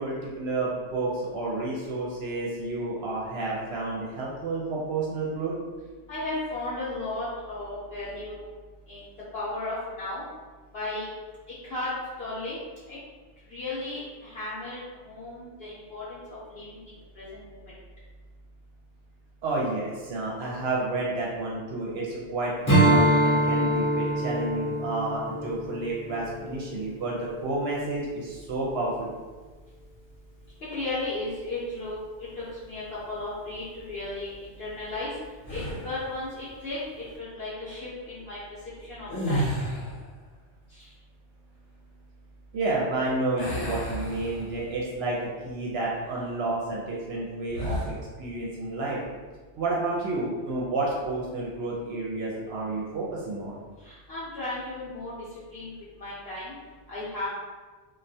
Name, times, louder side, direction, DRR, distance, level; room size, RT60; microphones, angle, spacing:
voice 1, 0.0-5.6 19.4-29.1 42.5-49.0 49.6-53.6, right 2 dB, 65° right, -4 dB, 0.8 m, -30 dB
voice 2, 6.1-8.5 8.9-9.0 9.3-10.2 10.7-11.1 11.6-11.9 12.2-12.6 12.9-13.0 13.5-14.8 15.0-17.7 30.7-35.1 35.5-38.4 38.9-39.5 40.8-40.9 53.8-55.1 55.5-55.7 56.0-56.6 56.9-57.3, left 2 dB, 65° left, -8 dB, 0.8 m, -35 dB
Strum, 22.6-27.3, right 1 dB, 25° left, 0.4 m, -24 dB
sound 1, 35.4-36.1 39.0-40.1 43.4-44.8 45.3-45.5 47.5-48.0, equal, 80° left, 1.0 m, -31 dB
2.3 x 2.1 x 2.6 m, 1.4 s
omnidirectional pair, 1.2 m